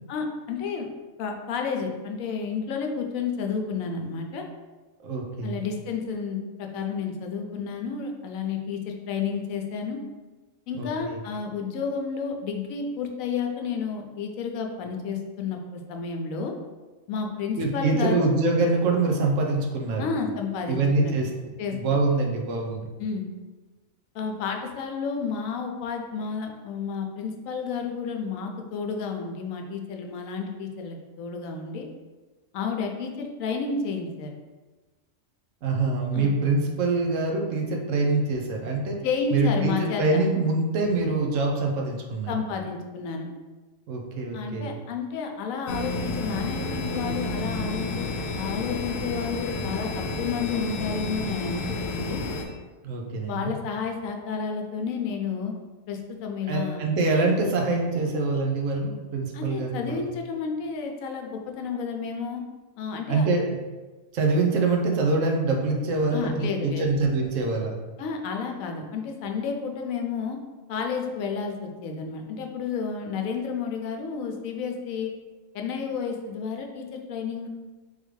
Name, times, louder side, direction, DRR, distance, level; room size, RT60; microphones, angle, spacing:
voice 1, 0.1-0.9 1.2-4.4 5.4-10.0 10.7-16.5 17.1-18.3 20.0-21.1 21.6-22.0 23.0-23.3 24.1-31.9 32.5-34.3 36.1-36.3 39.0-40.2 42.3-43.3 44.3-51.6 51.9-52.2 53.3-55.5 55.9-56.8 59.3-62.4 62.8-63.3 66.1-66.9 68.0-70.4 70.7-75.1 75.5-77.5, left 5 dB, 85° left, 3 dB, 1.0 m, -31 dB
voice 2, 5.0-5.6 10.8-11.2 17.6-20.1 20.7-21.3 21.7-22.8 35.6-39.0 39.3-42.3 43.9-44.7 52.8-53.5 56.5-60.1 63.1-63.6 64.1-67.8, right 3 dB, 75° right, 1 dB, 1.0 m, -25 dB
sound 1, 45.7-52.4, left 2 dB, 65° left, 0.7 m, -31 dB
3.7 x 3.2 x 3.1 m, 1.2 s
omnidirectional pair, 1.4 m